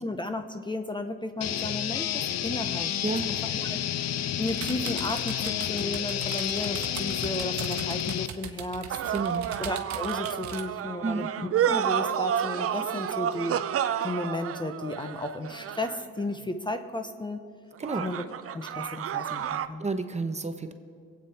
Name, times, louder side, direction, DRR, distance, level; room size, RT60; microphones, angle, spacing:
voice 1, 0.0-3.1 3.4-3.8 4.4-8.9 9.6-11.3 11.7-13.6 14.0-17.4 18.0-18.2 18.5-19.9, left 2 dB, 15° left, 7 dB, 0.8 m, -34 dB
sound 1, 1.4-8.3, left 10 dB, 60° left, 0.6 m, -30 dB
sound 2, 4.4-10.6, right 8 dB, 65° right, 1.2 m, -40 dB
sound 3, 8.9-16.2 17.8-19.7, right 9 dB, 50° right, 0.6 m, -30 dB
voice 2, 9.1-9.4 11.0-11.3 17.8-18.1 19.8-20.7, right 3 dB, 20° right, 8 dB, 0.9 m, -30 dB
22.0 x 8.7 x 4.3 m, 2.1 s
cardioid pair, 90°, 30 cm